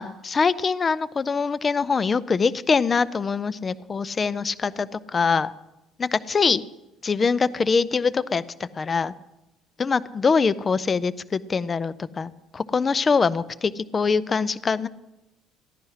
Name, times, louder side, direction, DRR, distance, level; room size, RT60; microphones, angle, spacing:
voice 1, 0.0-5.5 6.0-6.6 7.0-9.1 9.8-14.9, left 5 dB, 20° left, 17 dB, 0.4 m, -23 dB
15.0 x 11.0 x 5.6 m, 0.98 s
cardioid pair, 165°, 0 cm